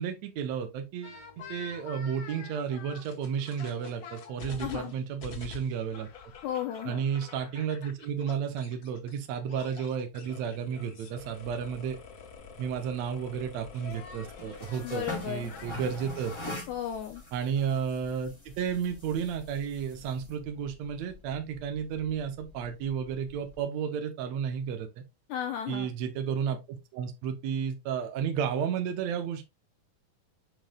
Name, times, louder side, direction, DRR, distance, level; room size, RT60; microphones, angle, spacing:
voice 1, 0.0-6.1 6.9-12.0 12.6-16.6 17.3-25.0 25.7-29.5, right 7 dB, 70° right, 1.8 m, -32 dB
la venganza, 1.0-9.2 9.5-16.5, left 6 dB, 40° left, 2.2 m, -47 dB
voice 2, 4.6-4.9 6.4-7.0 14.8-15.5 16.7-17.2 25.3-25.9, left 10 dB, 80° left, 1.7 m, -34 dB
sound 1, 12.4-23.6, left 2 dB, 10° left, 1.4 m, -45 dB
7.0 x 6.0 x 2.3 m
omnidirectional pair, 4.1 m